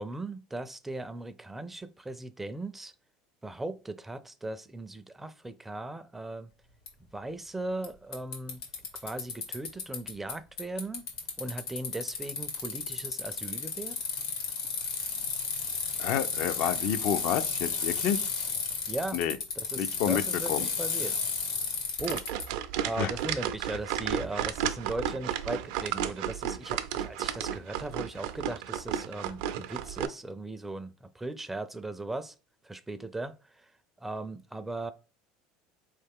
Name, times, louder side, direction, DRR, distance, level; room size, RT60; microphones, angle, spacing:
voice 1, 0.0-2.9 3.4-6.5 7.1-8.6 9.0-11.1 11.4-14.0 18.9-19.2 19.6-21.1 22.0-22.3 22.8-32.3 32.6-33.7 34.0-34.9, right 2 dB, 10° right, 0.4 m, -38 dB
Bicycle, 6.9-7.0 7.8-7.9 8.1-10.3 10.6-22.5, left 5 dB, 80° left, 1.7 m, -33 dB
voice 2, 16.0-18.3 19.1-19.4 19.8-20.2 20.5-20.7 23.0-23.1, left 9 dB, 60° left, 0.5 m, -29 dB
sound 1, 22.0-30.1, right 10 dB, 80° right, 0.5 m, -33 dB
4.1 x 3.2 x 3.5 m
supercardioid pair, 120°, 3 cm